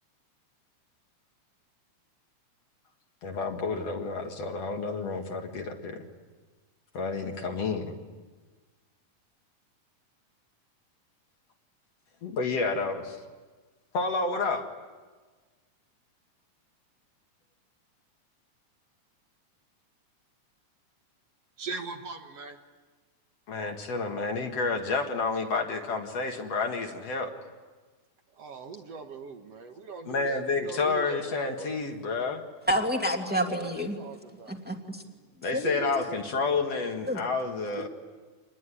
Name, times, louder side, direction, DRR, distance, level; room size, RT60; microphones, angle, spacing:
voice 1, 3.2-6.1 6.9-8.0 12.2-13.2 13.9-14.7 23.5-27.3 30.1-32.4 35.4-37.9, left 4 dB, 55° left, 3 dB, 2.8 m, -30 dB
voice 2, 21.6-22.6 28.3-31.8 33.3-34.6, right 4 dB, 60° right, 4 dB, 2.4 m, -41 dB
voice 3, 32.7-34.0 34.5-35.0 35.5-35.9 37.1-37.2, equal, 5° right, 2 dB, 2.1 m, -29 dB
27.5 x 21.0 x 10.0 m, 1.4 s
omnidirectional pair, 3.5 m